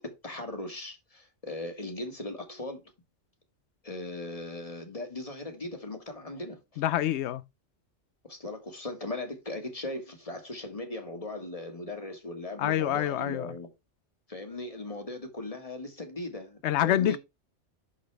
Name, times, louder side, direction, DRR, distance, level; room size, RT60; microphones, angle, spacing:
voice 1, 0.2-2.8 3.8-6.8 8.2-13.7 14.3-17.2, left 2 dB, 30° left, 1.8 m, -38 dB
voice 2, 6.8-7.4 12.6-13.5 16.6-17.2, left 12 dB, 70° left, 0.8 m, -26 dB
11.5 x 4.0 x 3.3 m
omnidirectional pair, 1.3 m